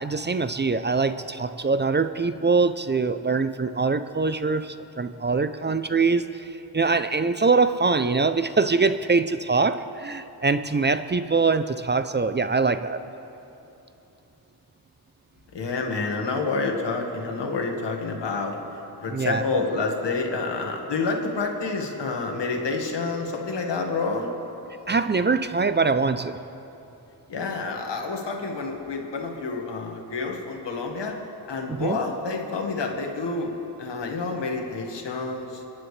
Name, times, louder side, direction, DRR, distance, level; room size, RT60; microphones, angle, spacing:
voice 1, 0.0-6.5 6.7-13.0 19.1-19.6 24.9-26.4 31.8-32.0, right 4 dB, 25° right, 11 dB, 0.5 m, -23 dB
voice 2, 15.5-18.6 19.0-24.3 27.3-31.2 31.5-33.5 33.8-35.6, left 3 dB, 85° left, 2 dB, 1.7 m, -28 dB
29.5 x 10.5 x 3.3 m, 3.0 s
cardioid pair, 65°, 41 cm